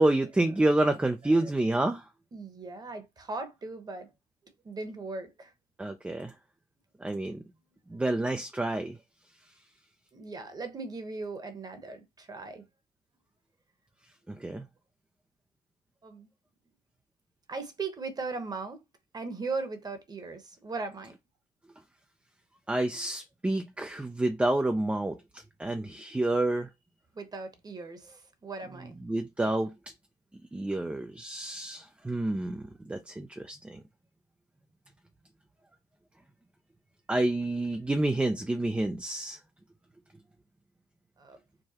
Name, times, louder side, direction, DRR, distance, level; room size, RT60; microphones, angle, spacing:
voice 1, 0.0-2.1 5.8-6.3 7.0-7.4 7.9-9.0 14.3-14.7 22.7-26.7 29.0-29.7 30.5-33.8 37.1-39.4, right 2 dB, 5° right, 0.3 m, -29 dB
voice 2, 2.3-4.1 4.6-5.5 10.1-12.6 16.0-16.3 17.5-18.8 19.1-21.1 27.1-28.9 41.2-41.4, right 3 dB, 25° right, 0.9 m, -38 dB
4.7 x 2.2 x 2.8 m
cardioid pair, 110°, 17 cm